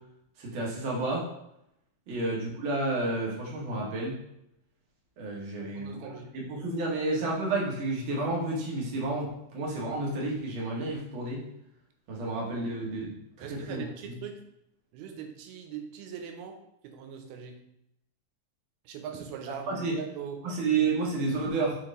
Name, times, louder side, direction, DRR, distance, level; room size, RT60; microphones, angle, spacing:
voice 1, 0.4-1.2 2.1-4.1 5.2-6.1 6.5-11.4 12.1-13.8 19.7-19.9 20.4-21.8, right 3 dB, 50° right, -3 dB, 1.7 m, -30 dB
voice 2, 5.6-6.3 13.4-14.4 14.9-17.6 18.9-20.5, right 7 dB, 90° right, 5 dB, 2.7 m, -41 dB
6.0 x 4.7 x 3.7 m, 0.80 s
omnidirectional pair, 4.4 m